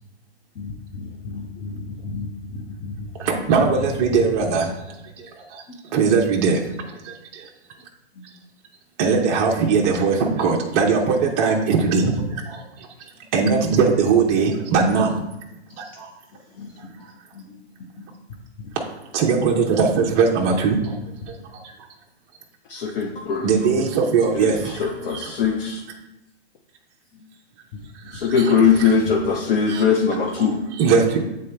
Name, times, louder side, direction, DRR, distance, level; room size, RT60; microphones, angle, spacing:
voice 1, 0.6-4.3 8.2-8.3 15.2-15.3 16.6-17.0 17.3-17.6 18.0-18.1 23.0-23.2 27.1-27.2 28.0-28.2, left 3 dB, 20° left, -1 dB, 0.5 m, -34 dB
voice 2, 3.5-4.6 5.9-6.6 9.0-12.1 13.3-15.1 19.1-20.8 23.4-24.5 30.8-31.2, right 5 dB, 25° right, -1 dB, 0.6 m, -19 dB
voice 3, 22.7-23.9 24.2-25.8 28.1-30.6, left 6 dB, 55° left, 0 dB, 0.8 m, -21 dB
7.7 x 3.8 x 3.3 m, 0.95 s
hypercardioid pair, 145°, 34 cm